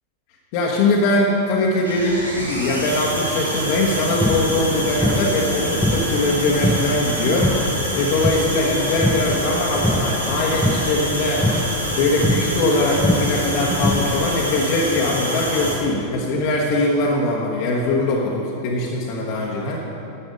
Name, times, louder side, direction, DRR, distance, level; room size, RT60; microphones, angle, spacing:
voice 1, 0.5-7.5 7.9-11.5 11.9-19.8, left 2 dB, 45° left, -3 dB, 1.2 m, -21 dB
sound 1, 1.8-15.8, equal, 90° right, 1.8 m, -26 dB
sound 2, 4.2-14.2, equal, ahead, 0.5 m, -25 dB
11.0 x 7.6 x 5.4 m, 2.9 s
figure-of-eight pair, 90°, 0 cm